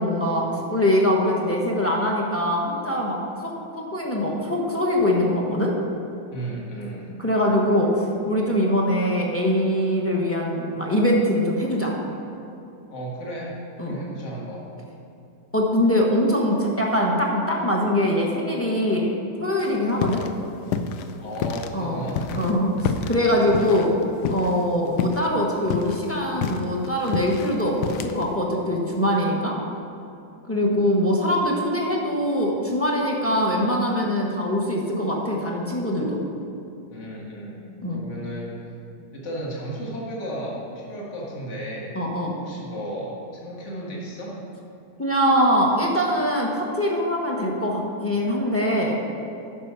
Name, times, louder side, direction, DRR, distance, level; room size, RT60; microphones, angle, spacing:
voice 1, 0.0-5.7 7.2-11.9 13.8-14.0 15.5-19.1 19.4-20.2 21.7-22.0 22.3-23.9 24.3-29.6 30.5-36.2 37.8-38.0 41.9-42.3 45.0-49.0, equal, 10° left, -2 dB, 1.0 m, -23 dB
voice 2, 6.3-7.1 12.9-13.6 13.9-14.7 21.2-22.4 36.9-37.6 37.9-38.6 39.1-41.9 42.3-44.4, right 1 dB, 45° left, -4 dB, 1.9 m, -34 dB
sound 1, 19.6-20.4 20.6-21.7 22.1-24.7 25.0-25.3 25.6-28.3, left 6 dB, 75° left, 1.1 m, -29 dB
9.4 x 6.3 x 5.7 m, 2.7 s
omnidirectional pair, 1.8 m